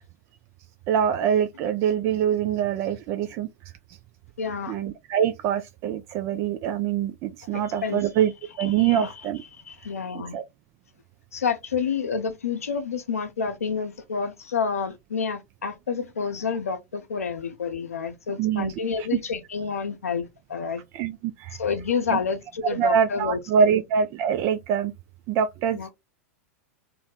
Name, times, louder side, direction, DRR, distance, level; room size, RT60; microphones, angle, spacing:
voice 1, 0.9-3.5 3.9-4.0 4.7-8.3 8.6-9.4 10.3-10.4 18.4-18.7 20.9-21.6 22.1-22.2 22.8-24.9 25.3-25.9, right 8 dB, 40° right, 0.3 m, -24 dB
voice 2, 4.4-4.7 7.5-8.1 8.6-9.1 9.7-10.4 11.3-20.8 21.5-23.7 25.7-25.9, left 6 dB, 80° left, 0.6 m, -29 dB
2.6 x 2.1 x 3.9 m
figure-of-eight pair, 95°, 8 cm